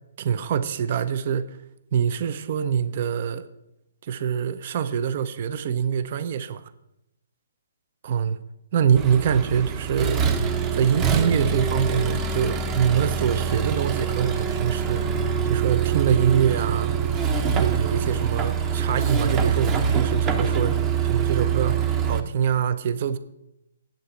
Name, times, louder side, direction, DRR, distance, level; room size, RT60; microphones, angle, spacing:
voice 1, 0.2-1.6 1.9-3.5 4.0-6.6 8.0-8.4 8.7-10.3 10.7-15.0 15.4-16.9 17.5-20.8 21.0-23.2, right 8 dB, 45° right, 0.6 m, -24 dB
Accelerating revving vroom, 9.0-22.2, right 7 dB, 20° right, 0.9 m, -24 dB
8.3 x 6.5 x 8.3 m
hypercardioid pair, 145°, 0 cm